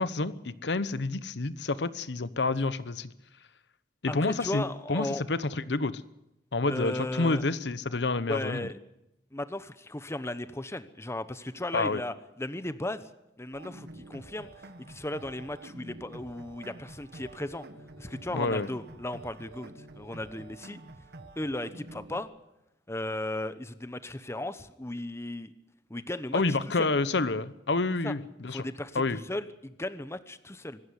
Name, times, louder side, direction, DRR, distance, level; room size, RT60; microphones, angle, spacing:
voice 1, 0.0-3.1 4.0-4.6 4.9-6.0 6.5-8.7 11.7-12.0 18.3-18.7 26.3-28.6 28.9-29.2, left 3 dB, 75° left, 15 dB, 0.9 m, -28 dB
voice 2, 4.1-5.2 6.7-7.4 8.3-8.8 9.3-13.1 13.4-17.7 18.0-20.8 21.4-22.3 22.9-25.5 25.9-26.9 28.0-28.1 28.5-30.8, left 1 dB, 15° left, 13 dB, 0.9 m, -36 dB
sound 1, 13.5-22.2, right 2 dB, 65° right, 1.7 m, -48 dB
24.5 x 13.0 x 9.7 m, 0.87 s
head